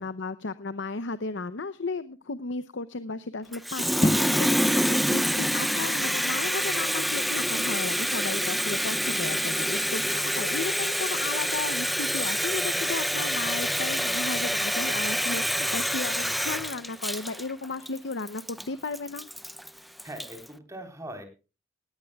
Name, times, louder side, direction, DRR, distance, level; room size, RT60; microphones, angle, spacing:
voice 1, 0.0-19.3, left 3 dB, 65° left, 13 dB, 0.7 m, -34 dB
Water tap faucet, 3.5-20.4, equal, ahead, 0.5 m, -27 dB
sound 1, 4.0-10.2, left 1 dB, 20° left, 1.2 m, -35 dB
voice 2, 19.7-21.2, right 1 dB, 15° right, 5 dB, 3.9 m, -41 dB
18.0 x 17.5 x 2.3 m, 0.31 s
head